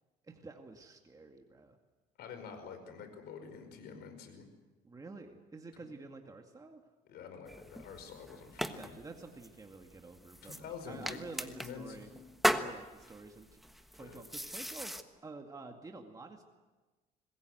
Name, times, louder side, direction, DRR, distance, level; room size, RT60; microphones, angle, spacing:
voice 1, 0.2-1.8 4.8-6.8 8.6-12.1 12.5-15.0 15.2-16.4, right 3 dB, 20° right, 3 dB, 2.1 m, -49 dB
voice 2, 2.2-4.5 7.1-9.0 10.4-12.2 14.0-14.2, left 6 dB, 75° left, 8 dB, 5.2 m, -47 dB
sound 1, 7.4-15.0, equal, ahead, 1.4 m, -38 dB
26.5 x 20.5 x 8.0 m, 1.2 s
cardioid pair, 110°, 17 cm